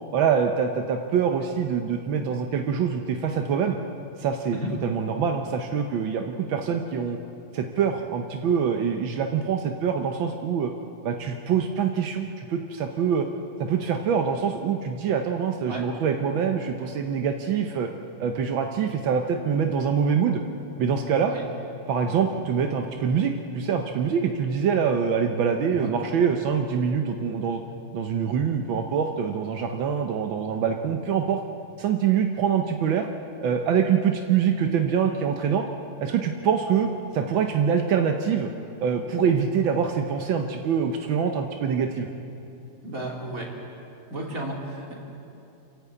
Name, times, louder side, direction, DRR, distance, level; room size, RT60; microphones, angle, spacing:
voice 1, 0.1-3.8 4.2-7.2 7.5-10.7 11.0-13.3 13.6-17.9 18.2-20.4 20.8-21.3 21.9-27.6 27.9-31.4 31.8-33.1 33.4-35.7 36.0-38.5 38.8-42.1, right 7 dB, 85° right, 4 dB, 1.7 m, -25 dB
voice 2, 42.8-43.5 44.1-44.9, right 1 dB, 45° right, -1 dB, 3.4 m, -33 dB
28.5 x 11.5 x 8.4 m, 2.7 s
omnidirectional pair, 2.1 m